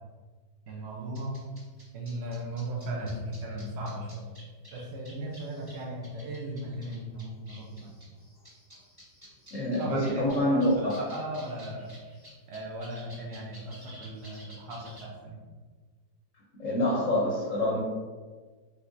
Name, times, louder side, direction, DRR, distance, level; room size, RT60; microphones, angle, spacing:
voice 1, 0.7-1.5 1.9-4.3 4.7-8.0 9.8-12.0 12.5-15.4, right 1 dB, 85° right, -2 dB, 0.5 m, -37 dB
sound 1, 1.1-15.1, right 1 dB, 15° right, 0.8 m, -52 dB
voice 2, 9.5-11.1 16.6-17.8, left 1 dB, 60° left, -5 dB, 0.8 m, -26 dB
5.2 x 3.2 x 2.6 m, 1.4 s
omnidirectional pair, 2.1 m